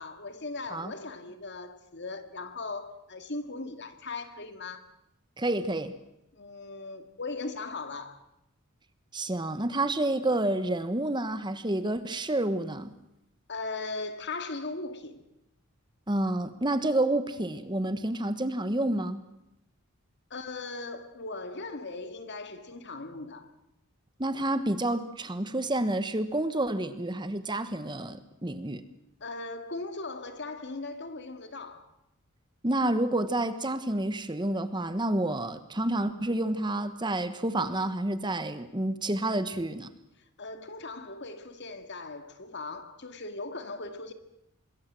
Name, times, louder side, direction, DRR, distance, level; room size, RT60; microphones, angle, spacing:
voice 1, 0.0-4.8 6.3-8.2 13.5-15.2 20.3-23.5 29.2-31.9 40.2-44.1, left 3 dB, 50° left, 2.1 m, -38 dB
voice 2, 5.4-5.9 9.1-12.9 16.1-19.2 24.2-28.8 32.6-39.9, right 1 dB, 20° right, 1.2 m, -29 dB
26.5 x 21.0 x 7.6 m
head